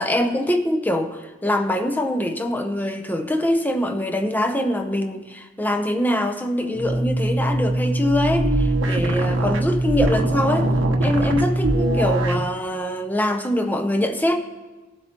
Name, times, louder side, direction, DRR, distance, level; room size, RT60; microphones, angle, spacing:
voice 1, 0.0-10.7 11.0-14.4, left 1 dB, 10° left, 6 dB, 0.7 m, -23 dB
sound 1, 6.7-12.5, right 1 dB, 85° right, 1.0 m, -21 dB
19.5 x 7.7 x 3.0 m, 1.2 s
head